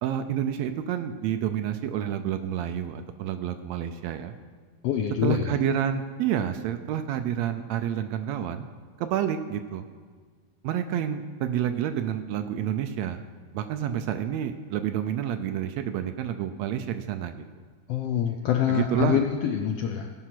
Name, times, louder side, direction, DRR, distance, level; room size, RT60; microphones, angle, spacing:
voice 1, 0.0-4.3 5.2-8.6 9.0-9.8 10.6-13.2 13.5-17.4 18.7-19.2, right 10 dB, 80° right, 8 dB, 1.7 m, -29 dB
voice 2, 4.8-5.5 17.9-20.1, left 9 dB, 80° left, 4 dB, 1.4 m, -25 dB
16.0 x 5.7 x 5.9 m, 1.5 s
omnidirectional pair, 3.4 m